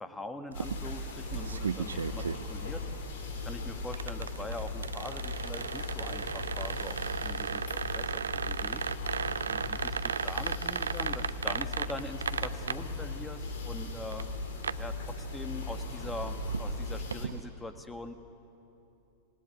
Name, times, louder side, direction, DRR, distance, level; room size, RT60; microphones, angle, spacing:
voice 1, 0.0-2.8 3.4-7.6 7.9-8.8 9.5-14.3 14.8-18.1, left 2 dB, 10° left, 8 dB, 1.6 m, -43 dB
sound 1, 0.5-17.3, left 6 dB, 55° left, 3.7 m, -39 dB
sound 2, 0.5-17.4, right 6 dB, 70° right, 0.5 m, -36 dB
26.0 x 18.0 x 9.5 m, 2.9 s
figure-of-eight pair, 90°, 0 cm